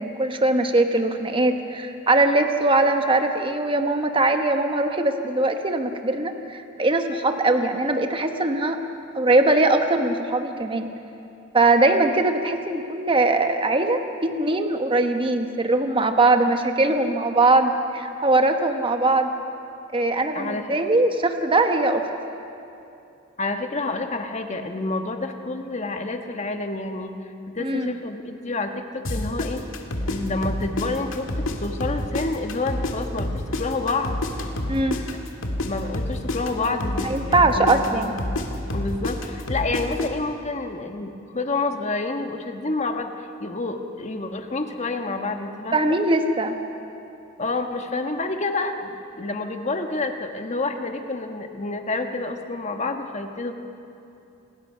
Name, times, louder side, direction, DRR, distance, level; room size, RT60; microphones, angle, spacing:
voice 1, 0.0-8.8 9.1-10.9 11.5-19.3 19.9-22.1 27.6-27.9 34.7-35.0 37.0-38.1 45.7-46.5, right 2 dB, 25° right, 6 dB, 1.1 m, -21 dB
voice 2, 20.3-20.7 23.4-27.1 27.5-29.6 30.0-34.2 35.6-38.1 38.7-46.0 47.4-53.5, left 3 dB, 35° left, 5 dB, 1.3 m, -28 dB
sound 1, 29.0-31.5 31.8-35.7 35.9-40.1, left 1 dB, 70° left, 2.0 m, -28 dB
28.0 x 19.5 x 5.7 m, 2.7 s
head